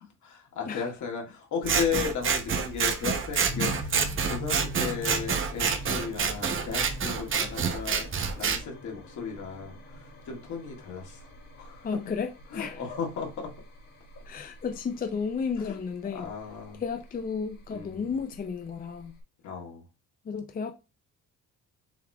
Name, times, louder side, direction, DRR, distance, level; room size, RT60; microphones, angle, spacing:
voice 1, 0.0-3.9 4.3-8.1 8.4-11.3 11.6-11.9 12.5-13.5 15.6-15.8 16.1-16.8 17.7-18.1 19.4-19.8, left 6 dB, 65° left, 1.9 m, -35 dB
Scissors, 1.6-8.6, right 6 dB, 40° right, 0.7 m, -28 dB
sound 1, 3.5-19.2, left 1 dB, 45° left, 2.4 m, -44 dB
voice 2, 11.8-12.8 14.3-16.3 16.7-19.2 20.3-20.7, left 5 dB, 30° left, 0.5 m, -33 dB
6.9 x 3.1 x 2.3 m
cardioid pair, 105°, 32 cm